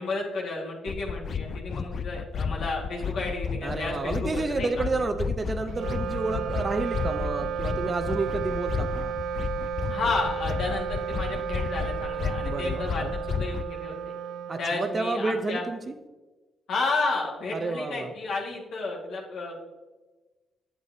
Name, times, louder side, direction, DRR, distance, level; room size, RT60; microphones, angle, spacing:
voice 1, 0.0-4.7 9.9-13.9 14.6-15.6 16.7-19.6, left 3 dB, 70° left, -2 dB, 1.7 m, -32 dB
sound 1, 0.9-13.7, left 6 dB, 50° left, 0.3 m, -33 dB
voice 2, 3.6-9.1 12.4-13.2 14.5-15.9 17.5-18.1, right 3 dB, 30° right, 8 dB, 0.6 m, -30 dB
Wind instrument woodwind instrument, 5.7-15.3, right 8 dB, 75° right, 0.3 m, -33 dB
7.9 x 7.7 x 2.7 m, 1.2 s
cardioid pair, 90°, 0 cm